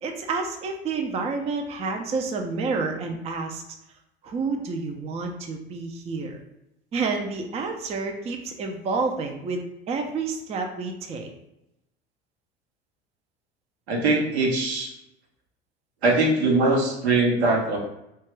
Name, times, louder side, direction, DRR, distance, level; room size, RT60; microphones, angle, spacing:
voice 1, 0.0-3.6 4.2-6.4 6.9-11.3, right 4 dB, 20° right, 4 dB, 0.4 m, -29 dB
voice 2, 13.9-14.9 16.0-17.8, right 2 dB, 80° right, 0 dB, 0.8 m, -21 dB
2.8 x 2.3 x 3.1 m, 0.84 s
hypercardioid pair, 75°, 32 cm